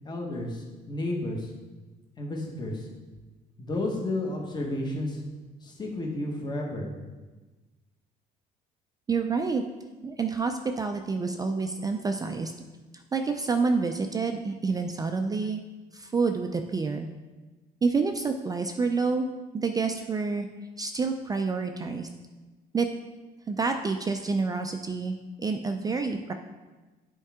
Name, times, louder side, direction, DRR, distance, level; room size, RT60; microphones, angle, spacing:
voice 1, 0.0-1.5 2.2-2.9 3.6-5.2 5.6-6.9, left 1 dB, 25° left, 0 dB, 1.3 m, -32 dB
voice 2, 9.1-9.6 10.0-12.5 13.1-15.6 15.9-17.1 17.8-19.3 19.5-20.5 20.8-22.1 22.7-22.9 23.5-26.3, right 4 dB, 20° right, 5 dB, 0.4 m, -28 dB
8.2 x 4.6 x 3.6 m, 1.2 s
cardioid pair, 110°, 17 cm